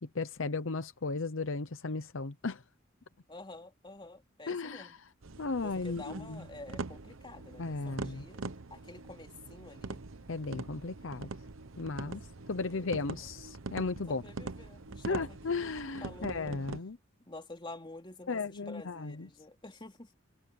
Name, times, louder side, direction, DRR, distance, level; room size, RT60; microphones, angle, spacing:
voice 1, 0.0-2.6 4.5-5.0 5.4-6.4 7.6-8.3 10.3-11.3 11.8-12.2 12.5-14.2 15.0-17.0 18.3-19.3, left 3 dB, 70° left, 0.8 m, -35 dB
voice 2, 3.3-4.9 5.6-10.0 11.9-12.9 14.1-15.6 16.0-16.6 17.3-20.1, left 2 dB, 25° left, 2.9 m, -49 dB
sound 1, 5.2-16.8, right 3 dB, 75° right, 1.0 m, -43 dB
head